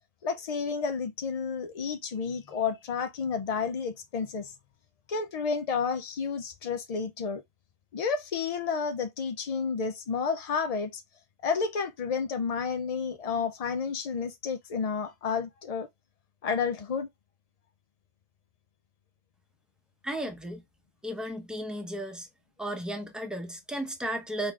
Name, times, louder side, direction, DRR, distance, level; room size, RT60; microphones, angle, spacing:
voice 1, 0.2-4.5 5.1-7.4 7.9-11.0 11.4-15.9 16.4-17.1, left 5 dB, 60° left, 0.4 m, -31 dB
voice 2, 20.0-20.6 21.0-22.3 22.6-24.5, right 1 dB, ahead, 0.7 m, -34 dB
4.6 x 3.9 x 2.3 m
omnidirectional pair, 1.2 m